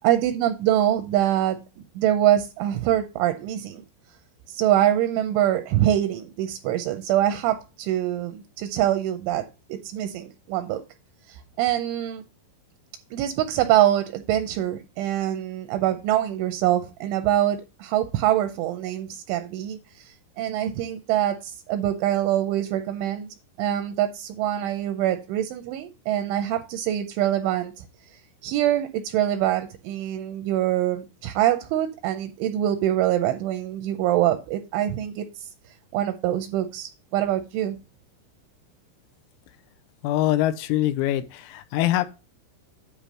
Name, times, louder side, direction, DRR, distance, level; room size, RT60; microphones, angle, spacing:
voice 1, 0.0-1.6 2.0-3.8 4.5-10.8 11.3-12.2 13.1-23.3 23.6-27.9 28.4-35.5 35.9-37.8, right 12 dB, 85° right, 2.7 m, -24 dB
voice 2, 40.0-42.1, left 13 dB, 85° left, 3.3 m, -23 dB
10.0 x 3.4 x 6.2 m
omnidirectional pair, 6.0 m